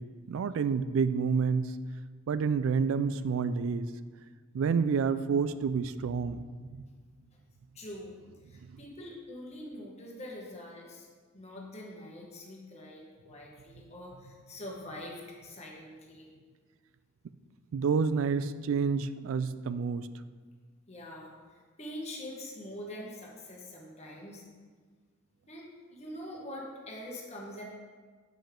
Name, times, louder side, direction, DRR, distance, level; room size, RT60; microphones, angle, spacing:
voice 1, 0.0-1.7 2.3-3.9 4.5-6.8 17.7-20.1, right 5 dB, 70° right, 13 dB, 0.3 m, -29 dB
voice 2, 7.7-8.1 8.4-11.1 11.3-16.3 20.9-24.4 25.5-27.6, left 1 dB, 30° left, -2 dB, 1.3 m, -44 dB
7.1 x 5.5 x 3.6 m, 1.5 s
head